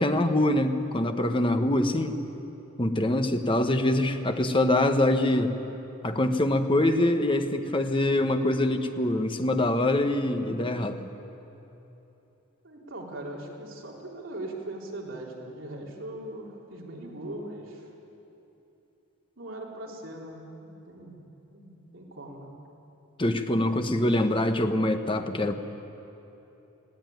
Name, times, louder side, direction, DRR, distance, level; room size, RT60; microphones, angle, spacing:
voice 1, 0.0-2.2 2.8-5.5 6.0-11.1 23.2-25.5, left 1 dB, 25° left, 7 dB, 1.1 m, -24 dB
voice 2, 12.6-17.9 19.4-22.6, right 1 dB, 65° right, -2 dB, 3.5 m, -40 dB
20.0 x 16.5 x 9.3 m, 3.0 s
head